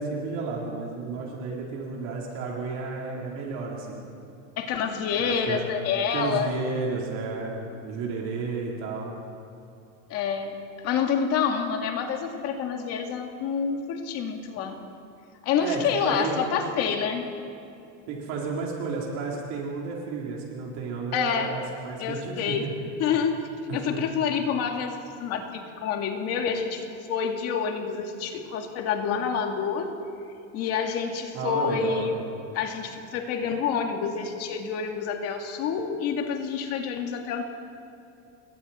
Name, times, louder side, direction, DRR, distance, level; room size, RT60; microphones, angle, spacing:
voice 1, 0.0-4.0 5.2-5.6 6.1-7.6 7.8-9.1 15.6-16.6 18.1-22.7 23.7-24.0 31.3-32.1, right 4 dB, 45° right, -2 dB, 3.8 m, -32 dB
voice 2, 4.6-6.5 10.1-10.6 10.8-14.8 15.4-17.2 21.1-21.5 22.0-22.7 23.0-23.4 23.7-29.9 30.5-32.1 32.5-37.4, left 6 dB, 40° left, 4 dB, 2.2 m, -28 dB
29.0 x 22.5 x 4.3 m, 2.6 s
cardioid pair, 170°, 38 cm